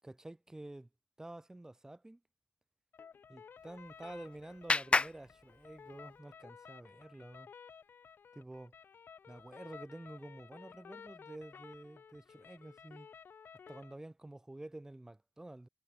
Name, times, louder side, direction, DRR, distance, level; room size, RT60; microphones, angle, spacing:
voice 1, 0.0-0.9 1.2-2.2 3.3-7.5 8.3-8.7 9.3-13.1 13.7-15.7, right 1 dB, 15° right, 5.8 m, -49 dB
sound 1, 2.9-13.9, left 6 dB, 65° left, 7.0 m, -55 dB
Clapping, 3.6-6.2, left 3 dB, 30° left, 0.7 m, -35 dB
cardioid pair, 75°, 4 cm